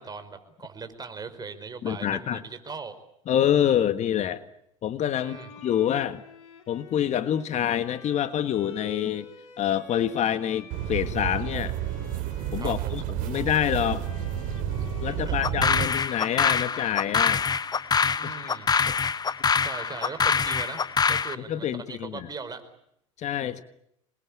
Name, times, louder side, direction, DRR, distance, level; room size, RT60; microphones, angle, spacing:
voice 1, 0.0-2.9 5.1-5.5 12.6-13.0 15.1-15.8 18.2-18.7 19.6-22.6, right 4 dB, 25° right, 9 dB, 4.9 m, -40 dB
voice 2, 1.8-2.4 3.3-4.4 4.8-6.2 6.7-9.3 9.6-11.7 12.5-14.0 15.0-17.4 18.2-18.4 18.9-19.0 21.4-22.3 23.2-23.6, left 10 dB, 45° left, 12 dB, 1.6 m, -26 dB
Bowed string instrument, 5.0-12.9 13.1-17.9, left 5 dB, 80° left, 4.2 m, -48 dB
Steps grass, 10.7-15.9, right 10 dB, 55° right, 3.6 m, -31 dB
sound 1, 15.4-21.4, left 6 dB, 25° left, 1.0 m, -25 dB
27.0 x 21.5 x 8.7 m, 0.75 s
hypercardioid pair, 80°, 17 cm